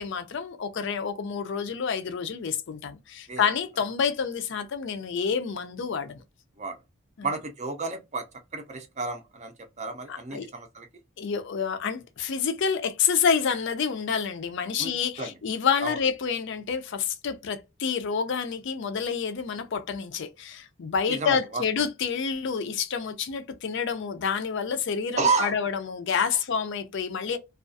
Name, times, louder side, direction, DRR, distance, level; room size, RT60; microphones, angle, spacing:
voice 1, 0.0-6.2 7.2-7.3 10.1-10.5 11.2-27.4, left 6 dB, 55° left, 0.4 m, -28 dB
voice 2, 7.2-8.3 8.5-10.9 14.8-15.4 15.8-16.0 21.1-21.6 25.2-25.6, right 4 dB, 35° right, 0.5 m, -30 dB
2.4 x 2.3 x 2.5 m
head